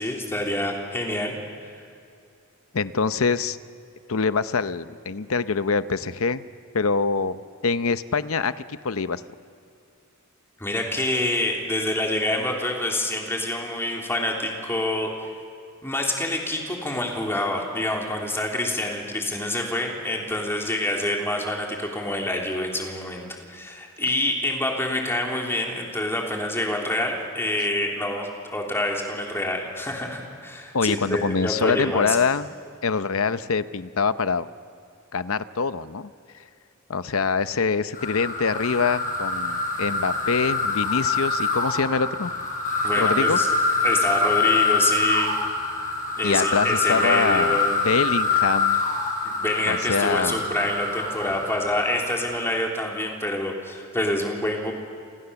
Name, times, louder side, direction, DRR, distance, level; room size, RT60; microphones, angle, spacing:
voice 1, 0.0-1.4 10.6-15.1 15.8-32.2 42.8-43.5 43.8-45.3 46.2-47.8 49.2-54.7, left 1 dB, 10° left, 0 dB, 3.5 m, -27 dB
voice 2, 2.7-3.6 4.1-6.4 6.7-9.2 30.7-32.5 32.8-34.5 35.1-36.1 36.9-42.3 43.0-43.4 46.2-48.8 49.7-50.4, left 5 dB, 70° left, 13 dB, 0.8 m, -24 dB
sound 1, 37.9-52.6, left 3 dB, 40° left, 6.1 m, -25 dB
29.0 x 28.0 x 7.1 m, 2.4 s
head